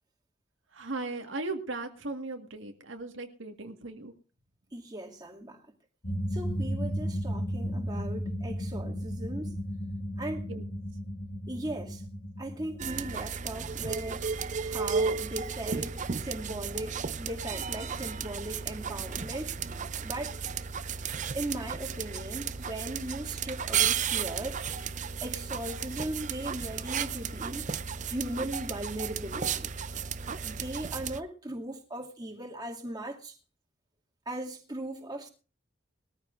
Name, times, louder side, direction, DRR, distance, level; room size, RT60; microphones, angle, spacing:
voice 1, 0.7-4.1 10.5-10.6, right 2 dB, 90° right, 1.8 m, -37 dB
voice 2, 4.7-5.6 6.3-9.5 10.2-10.5 11.5-12.0 12.4-14.3 14.6-19.5 20.0-20.3 21.3-24.6 25.2-27.7 28.1-29.7 30.4-33.3 34.3-35.3, right 1 dB, 20° right, 2.5 m, -38 dB
sound 1, 6.0-13.3, equal, 50° left, 2.0 m, -34 dB
sound 2, 12.8-31.2, right 6 dB, 40° right, 0.6 m, -34 dB
21.5 x 14.0 x 2.6 m
head